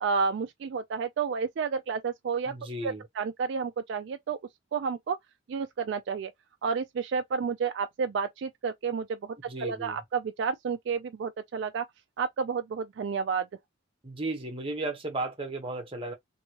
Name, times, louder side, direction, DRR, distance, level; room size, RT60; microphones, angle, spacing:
voice 1, 0.0-2.5 2.8-4.4 4.7-5.2 5.5-6.3 6.6-9.4 9.6-11.8 12.2-13.5, right 5 dB, 60° right, 0.3 m, -30 dB
voice 2, 2.4-3.0 9.5-10.0 14.0-16.1, right 2 dB, 25° right, 0.8 m, -34 dB
2.8 x 2.7 x 2.9 m
head